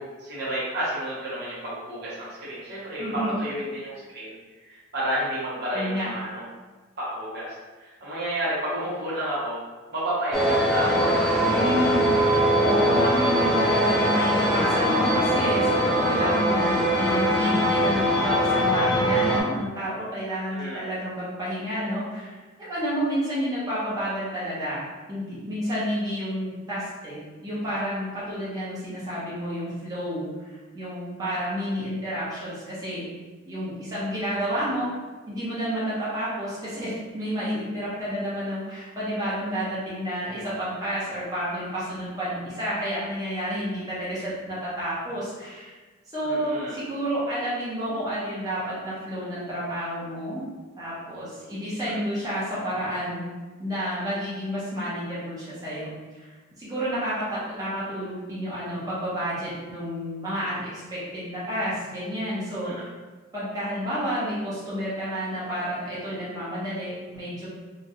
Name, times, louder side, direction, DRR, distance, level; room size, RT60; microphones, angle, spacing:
voice 1, 0.0-4.4 4.6-6.5 7.0-9.6 9.9-11.2 20.3-20.8 46.2-46.8 51.8-52.0 62.6-62.8, right 1 dB, 50° right, -8 dB, 0.9 m, -31 dB
voice 2, 3.0-3.4 5.7-6.1 11.3-33.1 33.4-34.9 35.3-45.8 46.1-50.4 50.8-53.2 53.6-56.3 56.6-62.9 63.3-67.5, equal, 20° right, -10 dB, 0.9 m, -30 dB
sound 1, 10.3-19.4, equal, 5° left, 0.4 m, -22 dB
3.0 x 2.4 x 2.8 m, 1.3 s
head